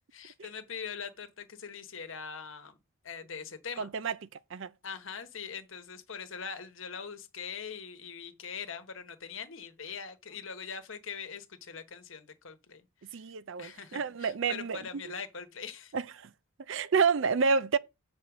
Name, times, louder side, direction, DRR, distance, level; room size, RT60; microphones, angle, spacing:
voice 1, 0.1-2.8 3.0-3.9 4.8-13.2 13.6-15.9, left 6 dB, 60° left, 1.1 m, -42 dB
voice 2, 3.8-4.2 4.5-4.7 13.1-15.0 15.9-16.3 16.7-17.8, right 5 dB, 60° right, 0.5 m, -29 dB
7.8 x 4.3 x 6.0 m
head